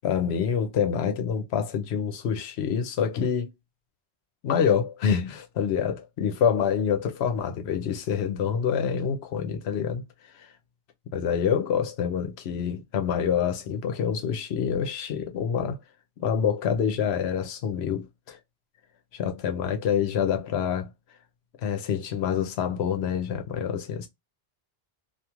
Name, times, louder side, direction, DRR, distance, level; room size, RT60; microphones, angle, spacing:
voice 1, 0.0-3.5 4.4-10.5 11.1-15.8 16.2-18.4 19.1-20.9 21.6-24.1, left 7 dB, 90° left, 0.9 m, -27 dB
2.9 x 2.4 x 2.3 m
omnidirectional pair, 1.0 m